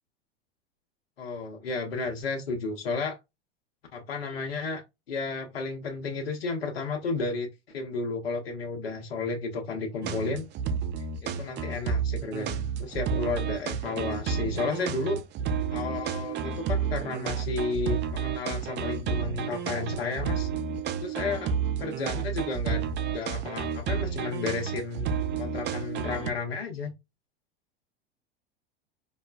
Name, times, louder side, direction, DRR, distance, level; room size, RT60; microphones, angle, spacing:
voice 1, 1.2-3.2 3.9-4.8 5.1-10.4 11.3-15.2 15.7-20.5 21.0-21.5 21.8-25.1 25.4-26.9, left 4 dB, 85° left, 1.0 m, -32 dB
sound 1, 10.0-26.3, right 7 dB, 35° right, 0.6 m, -31 dB
5.1 x 2.2 x 2.4 m
hypercardioid pair, 95°, 29 cm